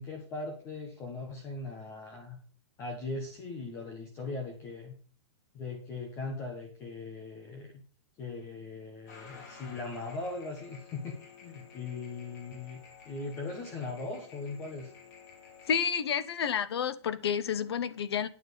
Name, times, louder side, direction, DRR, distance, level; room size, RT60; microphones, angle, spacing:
voice 1, 0.0-2.4 2.8-4.9 5.5-7.7 8.2-14.9, left 3 dB, 15° left, 1.4 m, -39 dB
sound 1, 9.1-15.8, left 6 dB, 40° left, 2.6 m, -52 dB
voice 2, 15.7-18.3, left 7 dB, 65° left, 1.0 m, -30 dB
9.6 x 6.0 x 6.4 m
hypercardioid pair, 180°, 15 cm